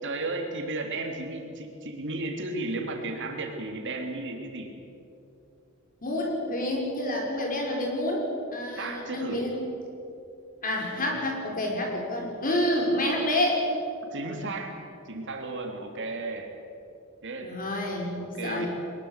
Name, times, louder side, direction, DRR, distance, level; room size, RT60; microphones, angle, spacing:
voice 1, 0.0-4.8 8.7-9.5 14.1-14.7 15.0-16.5 17.2-17.6 18.2-18.7, right 2 dB, 60° right, 3 dB, 3.3 m, -34 dB
voice 2, 6.0-8.3 8.5-9.6 10.6-13.6 17.4-18.7, left 1 dB, 40° left, 0 dB, 5.5 m, -28 dB
22.5 x 21.0 x 8.3 m, 2.7 s
head